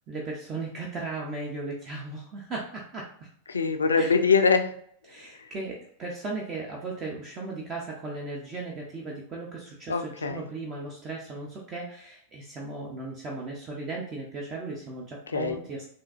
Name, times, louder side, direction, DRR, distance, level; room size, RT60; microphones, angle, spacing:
voice 1, 0.1-3.1 4.0-4.2 5.1-15.9, right 3 dB, 30° right, -2 dB, 0.7 m, -36 dB
voice 2, 3.5-4.7 9.9-10.4 15.3-15.6, left 5 dB, 75° left, 7 dB, 0.4 m, -23 dB
3.7 x 2.6 x 2.5 m, 0.64 s
figure-of-eight pair, 90°, 0 cm